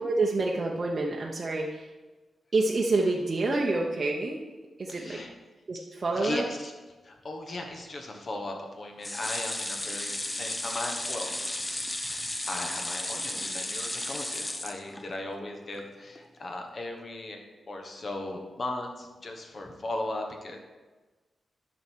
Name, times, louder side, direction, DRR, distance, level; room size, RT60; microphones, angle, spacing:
voice 1, 0.0-1.9 2.5-4.4 4.8-5.2 5.7-6.4, right 2 dB, 40° right, -1 dB, 0.8 m, -27 dB
voice 2, 4.9-5.3 5.7-6.7 7.0-11.7 12.0-20.6, left 2 dB, 40° left, 3 dB, 1.2 m, -37 dB
sound 1, 9.0-15.3 15.8-15.9 16.2-16.3, left 1 dB, 15° left, 0.6 m, -34 dB
10.5 x 6.3 x 4.6 m, 1.2 s
wide cardioid pair, 135°, 0 cm